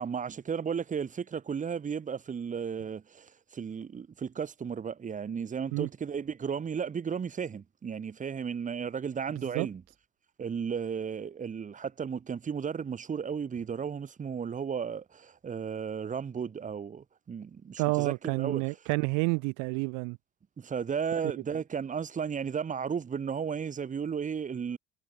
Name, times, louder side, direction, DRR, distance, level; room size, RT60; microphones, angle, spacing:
voice 1, 0.0-9.8 10.4-18.8 20.6-24.8, right 7 dB, 25° right, 1.0 m, -34 dB
voice 2, 17.8-20.2, right 32 dB, 70° right, 0.6 m, -29 dB
supercardioid pair, 90°, 32 cm